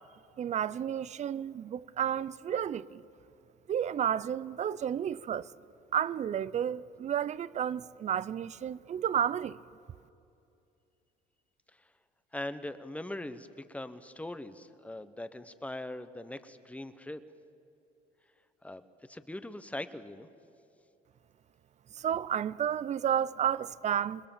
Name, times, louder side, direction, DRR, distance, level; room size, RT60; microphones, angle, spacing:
voice 1, 0.4-3.0 3.7-5.5 5.9-9.6 22.0-24.2, right 9 dB, 45° right, 0.6 m, -31 dB
voice 2, 12.3-17.2 18.6-18.8 19.1-20.3, left 1 dB, 10° left, 1.1 m, -41 dB
27.0 x 21.0 x 7.3 m
cardioid pair, 110°, 17 cm